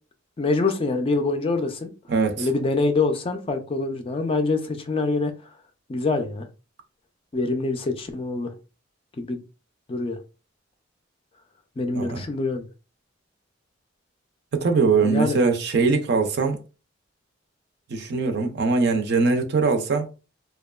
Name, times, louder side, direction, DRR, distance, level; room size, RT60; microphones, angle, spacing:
voice 1, 0.4-1.9 2.4-5.3 5.9-6.5 7.3-8.5 9.2-9.4 9.9-10.2 11.8-12.7 15.0-15.4, left 3 dB, 25° left, 0.3 m, -25 dB
voice 2, 2.1-2.5 11.9-12.3 14.5-16.6 17.9-20.1, right 4 dB, 55° right, 0.5 m, -22 dB
2.7 x 2.2 x 2.2 m
head